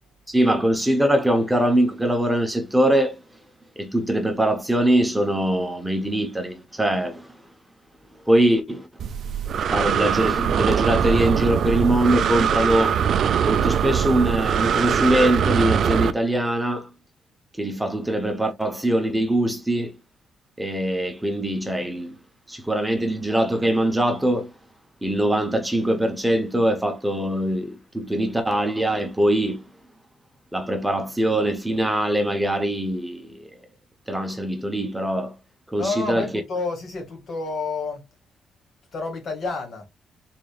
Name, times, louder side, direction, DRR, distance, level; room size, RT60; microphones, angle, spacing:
voice 1, 0.3-3.2 3.8-7.3 8.3-8.9 9.7-13.0 13.5-16.9 17.6-20.0 20.6-22.2 22.5-24.5 25.0-29.7 30.5-33.4 34.1-35.3 35.7-36.3, right 1 dB, 5° right, 0.8 m, -22 dB
Breathing, 9.0-16.1, right 8 dB, 60° right, 0.4 m, -22 dB
voice 2, 35.8-38.0 38.9-39.9, left 3 dB, 55° left, 1.9 m, -29 dB
3.9 x 3.4 x 2.3 m
cardioid pair, 90°, 0 cm